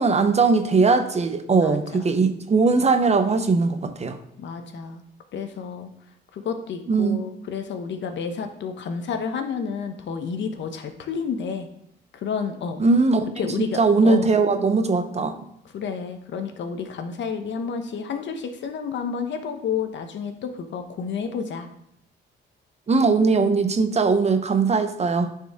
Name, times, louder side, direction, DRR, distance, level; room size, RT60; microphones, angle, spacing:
voice 1, 0.0-4.2 6.9-7.3 12.8-13.3 13.6-15.5 22.9-25.3, right 4 dB, 35° right, 9 dB, 0.8 m, -20 dB
voice 2, 1.5-2.2 4.4-5.0 5.3-5.9 6.3-11.7 12.1-12.8 13.4-14.3 15.7-21.7, left 6 dB, 65° left, 7 dB, 1.0 m, -30 dB
9.2 x 4.6 x 3.6 m, 0.77 s
cardioid pair, 90°, 20 cm